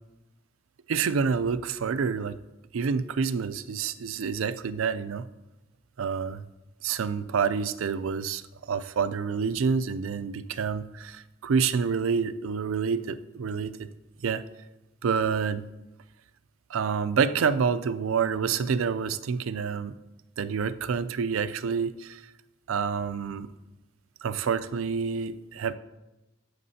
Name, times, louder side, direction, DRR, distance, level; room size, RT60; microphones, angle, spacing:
voice 1, 0.9-2.4 2.7-5.3 6.0-6.4 6.8-8.4 8.7-13.9 14.2-14.4 15.0-15.6 16.7-19.9 20.4-22.2 22.7-23.5 24.2-25.7, right 6 dB, 80° right, 13 dB, 0.4 m, -28 dB
13.0 x 5.9 x 2.8 m, 0.99 s
head